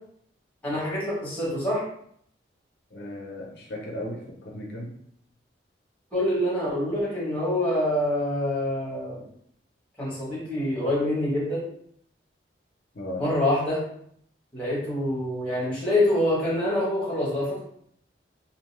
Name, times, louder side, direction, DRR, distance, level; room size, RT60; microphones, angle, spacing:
voice 1, 0.6-1.8 6.1-9.2 10.0-11.6 13.2-13.8 14.5-17.6, left 1 dB, 10° left, -6 dB, 1.1 m, -26 dB
voice 2, 2.9-5.0 12.9-13.3, left 1 dB, 65° left, -2 dB, 0.6 m, -36 dB
2.6 x 2.2 x 3.1 m, 0.67 s
head